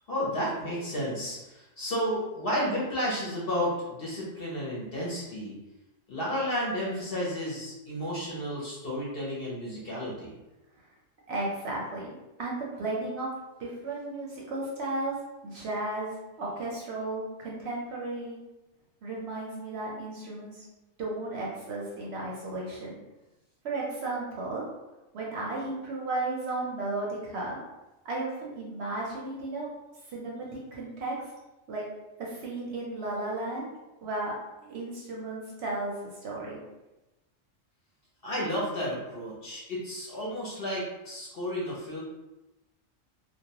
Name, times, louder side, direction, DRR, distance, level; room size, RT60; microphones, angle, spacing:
voice 1, 0.1-5.5 6.1-10.3 38.2-42.0, equal, 55° left, -5 dB, 0.7 m, -32 dB
voice 2, 11.3-13.3 13.6-15.1 15.4-18.4 19.0-20.7 21.0-23.0 23.6-24.6 25.1-27.6 28.0-29.7 30.1-31.1 31.7-31.9 32.2-33.7 34.0-34.3 34.6-36.6, right 2 dB, 65° right, -4 dB, 0.8 m, -34 dB
2.3 x 2.1 x 2.7 m, 1.0 s
omnidirectional pair, 1.4 m